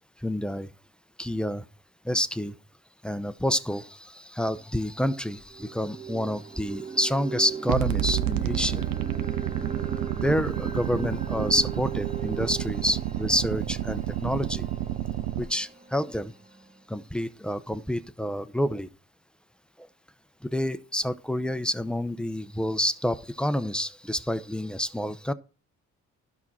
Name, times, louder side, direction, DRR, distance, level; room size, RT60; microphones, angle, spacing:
voice 1, 0.2-0.7 1.2-1.6 2.0-2.5 3.0-8.9 10.2-14.6 15.4-16.3 16.9-18.9 20.4-25.3, equal, 5° left, 0.7 m, -28 dB
sound 1, 4.6-4.7 5.1-17.1, right 5 dB, 25° right, 1.8 m, -39 dB
sound 2, 7.7-15.4, right 12 dB, 85° right, 0.9 m, -30 dB
12.0 x 6.1 x 4.2 m
cardioid pair, 90°, 30 cm